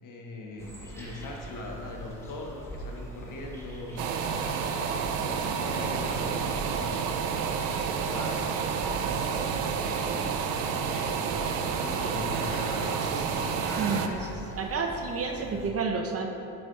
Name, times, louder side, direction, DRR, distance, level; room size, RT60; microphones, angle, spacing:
voice 1, 0.0-6.9 7.9-8.6 9.0-10.4 10.6-11.2 11.5-13.1 15.4-15.6, left 2 dB, 55° left, 0 dB, 1.4 m, -41 dB
sound 1, 0.6-15.7, right 1 dB, 5° left, 1.4 m, -42 dB
sound 2, 4.0-14.1, right 6 dB, 90° right, 0.6 m, -30 dB
voice 2, 13.8-16.3, right 4 dB, 35° right, 3 dB, 0.7 m, -30 dB
10.5 x 6.1 x 2.5 m, 2.8 s
supercardioid pair, 85°, 39 cm